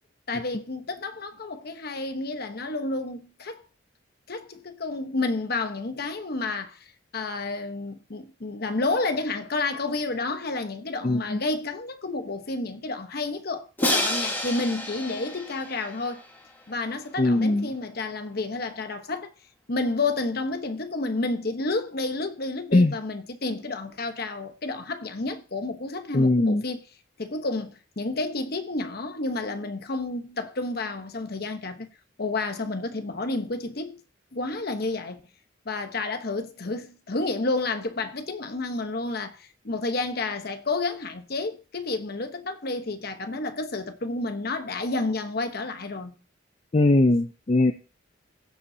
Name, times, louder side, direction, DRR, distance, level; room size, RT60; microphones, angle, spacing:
voice 1, 0.3-3.6 4.3-6.9 7.1-16.2 16.7-19.3 19.7-26.8 27.2-31.9 32.2-34.0 34.3-35.2 35.6-46.2, left 3 dB, 55° left, 1.0 m, -30 dB
voice 2, 11.0-11.4 17.2-17.7 22.7-22.9 26.1-26.6 46.7-47.7, left 2 dB, 35° left, 0.5 m, -20 dB
Crash cymbal, 13.8-16.7, left 1 dB, 10° left, 1.8 m, -29 dB
16.0 x 7.0 x 2.8 m
head